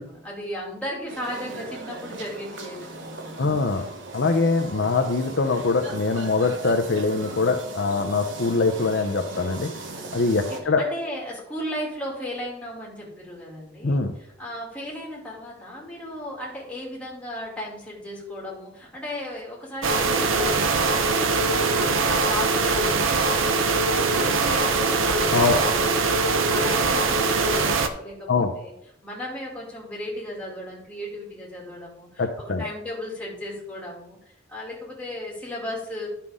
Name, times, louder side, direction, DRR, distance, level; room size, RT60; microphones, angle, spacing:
voice 1, 0.0-3.4 10.4-28.7 29.0-34.2 34.5-36.1, left 1 dB, 5° left, -3 dB, 2.6 m, -36 dB
sound 1, 1.1-10.6, right 2 dB, 65° right, 1.1 m, -38 dB
voice 2, 3.4-3.9 4.1-9.7 10.1-10.8 13.8-14.1 25.3-25.6 28.3-28.5 32.2-32.7, left 3 dB, 60° left, 5 dB, 0.6 m, -23 dB
sound 2, 19.8-27.9, right 4 dB, 80° right, 0.8 m, -22 dB
11.0 x 5.8 x 3.6 m, 0.78 s
head